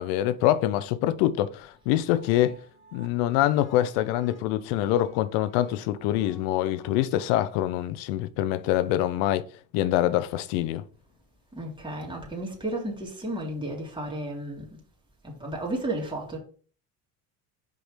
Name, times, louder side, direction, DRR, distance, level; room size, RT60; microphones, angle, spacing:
voice 1, 0.0-2.6 2.9-9.4 9.7-10.8, left 13 dB, 75° left, 0.7 m, -25 dB
sound 1, 1.7-7.1, equal, 25° left, 1.8 m, -50 dB
voice 2, 11.5-14.8 15.2-16.4, right 1 dB, 10° right, 2.3 m, -33 dB
5.1 x 3.9 x 5.0 m
hypercardioid pair, 70°, 45 cm